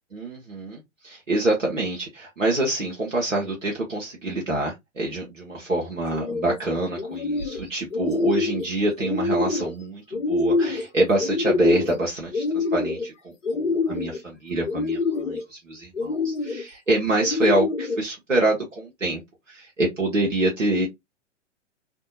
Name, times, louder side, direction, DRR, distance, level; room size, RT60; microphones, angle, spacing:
voice 1, 0.1-19.2 19.5-20.9, right 2 dB, 90° right, 0.8 m, -26 dB
sound 1, 6.1-6.6 7.0-7.6 7.9-8.7 9.0-9.7 10.1-10.9 11.2-12.0 12.3-13.1 13.4-14.2 14.7-15.4 15.9-16.6 17.2-18.0, left 3 dB, 75° left, 0.8 m, -25 dB
2.6 x 2.1 x 2.6 m
figure-of-eight pair, 110°, 37 cm